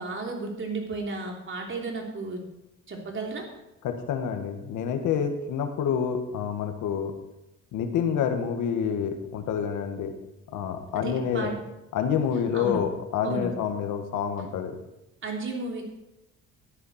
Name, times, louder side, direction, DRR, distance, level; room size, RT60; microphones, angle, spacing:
voice 1, 0.0-2.4 2.9-3.5 10.9-11.5 12.5-12.9 13.2-13.5 15.2-15.8, right 3 dB, 40° right, 1 dB, 3.2 m, -33 dB
voice 2, 3.8-7.1 7.7-10.1 10.5-11.5 11.9-14.7, left 7 dB, 85° left, 6 dB, 1.6 m, -28 dB
13.0 x 10.5 x 4.3 m, 0.92 s
cardioid pair, 90°, 30 cm